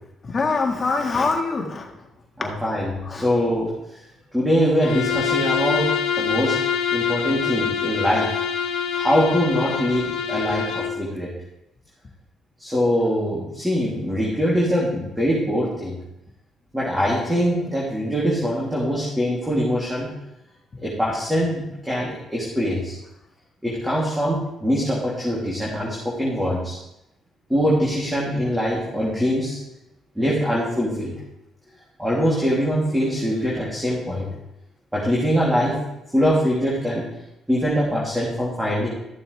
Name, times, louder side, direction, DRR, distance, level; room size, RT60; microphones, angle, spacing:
voice 1, 0.2-2.0 2.4-2.5 3.1-3.3, left 4 dB, 40° left, 2 dB, 1.9 m, -24 dB
voice 2, 2.4-3.7 4.3-6.6 6.9-8.3 8.9-11.3 12.6-16.0 16.7-20.1 20.8-22.9 23.6-26.8 27.5-29.6 30.1-31.1 32.0-34.3 34.9-35.8 36.1-37.1 37.5-38.9, equal, 10° right, -6 dB, 3.0 m, -23 dB
Bowed string instrument, 4.8-11.0, left 7 dB, 80° left, 1.0 m, -25 dB
14.5 x 6.9 x 3.5 m, 0.88 s
supercardioid pair, 75°, 0 cm